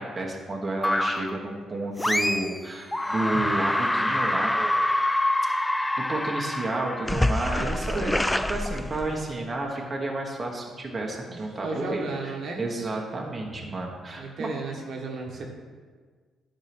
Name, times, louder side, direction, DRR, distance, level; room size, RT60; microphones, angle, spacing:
voice 1, 0.0-4.9 5.8-12.1 12.6-14.5, right 2 dB, 30° right, -1 dB, 1.4 m, -31 dB
sound 1, 0.8-1.4 2.0-2.6 2.9-9.4, left 1 dB, 10° left, 0.4 m, -26 dB
voice 2, 11.3-12.6 14.2-15.5, right 3 dB, 65° right, 0 dB, 1.6 m, -34 dB
10.5 x 4.5 x 6.2 m, 1.5 s
cardioid pair, 90°, 0 cm